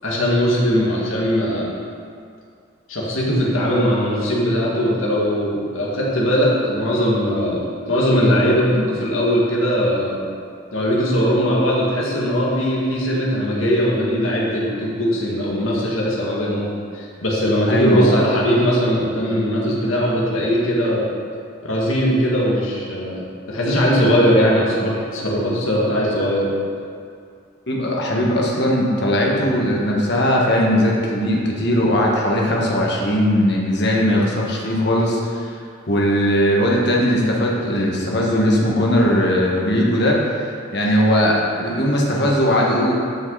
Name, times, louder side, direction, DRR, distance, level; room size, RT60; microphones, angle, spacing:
voice 1, 0.0-1.7 2.9-10.2 10.7-21.1 21.6-23.2 23.5-26.5, equal, 85° left, -4 dB, 2.3 m, -20 dB
voice 2, 17.7-18.1 27.7-35.5 35.9-40.2 40.7-42.9, equal, 55° left, -3 dB, 1.7 m, -19 dB
13.5 x 6.0 x 4.2 m, 2.3 s
head